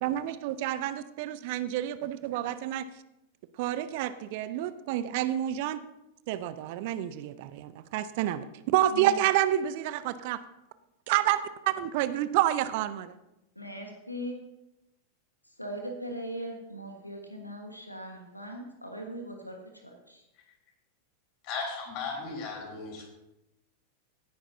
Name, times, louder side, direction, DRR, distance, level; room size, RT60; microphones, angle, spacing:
voice 1, 0.0-2.9 3.6-5.8 6.3-8.5 8.7-10.4 11.1-13.2, right 12 dB, 50° right, 14 dB, 0.6 m, -29 dB
voice 2, 13.5-14.4 15.6-19.6 19.8-20.2, right 1 dB, 90° left, 3 dB, 1.4 m, -39 dB
voice 3, 21.4-23.1, left 4 dB, 45° left, 0 dB, 3.9 m, -36 dB
17.0 x 10.0 x 2.7 m, 0.91 s
figure-of-eight pair, 90°, 0 cm